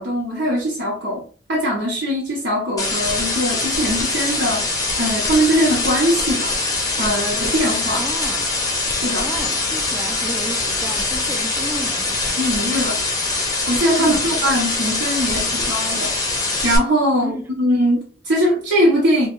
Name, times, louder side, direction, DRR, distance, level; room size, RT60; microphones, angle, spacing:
voice 1, 0.0-6.6 7.0-8.1 8.9-9.3 12.4-13.0 13.7-16.2 16.6-19.3, equal, 70° right, 0.9 m, -21 dB
sound 1, 2.8-16.8, left 3 dB, 20° left, 0.7 m, -23 dB
voice 2, 7.9-8.5 9.2-12.3 14.0-14.3 17.2-17.4, right 1 dB, 10° right, 0.4 m, -32 dB
3.0 x 2.3 x 2.9 m
head